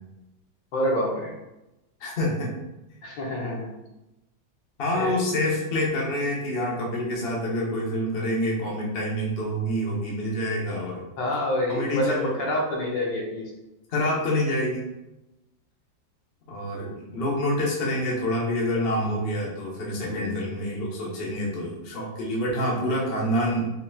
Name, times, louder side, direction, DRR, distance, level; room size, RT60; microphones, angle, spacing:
voice 1, 0.7-1.3 3.0-3.7 4.9-5.1 11.2-13.5 20.0-20.4, left 1 dB, 70° left, -2 dB, 1.5 m, -27 dB
voice 2, 2.0-2.5 4.8-11.0 11.7-12.4 13.9-14.8 16.5-23.7, left 1 dB, 40° left, -4 dB, 0.9 m, -27 dB
5.4 x 2.8 x 2.3 m, 0.96 s
omnidirectional pair, 2.1 m